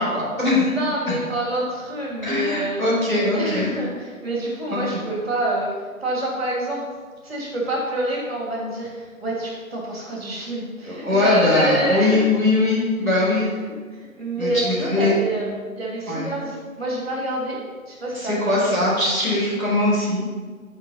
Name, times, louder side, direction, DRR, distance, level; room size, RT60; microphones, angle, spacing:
voice 1, 0.0-0.7 2.2-3.7 4.7-4.8 10.8-13.5 14.4-15.1 16.1-16.3 18.1-20.2, left 2 dB, 5° left, -16 dB, 3.0 m, -21 dB
voice 2, 0.7-2.8 3.3-6.9 7.2-12.3 13.3-17.6 17.9-18.7, right 1 dB, 45° right, -3 dB, 3.1 m, -27 dB
11.5 x 5.0 x 5.7 m, 1.5 s
figure-of-eight pair, 160°, 42 cm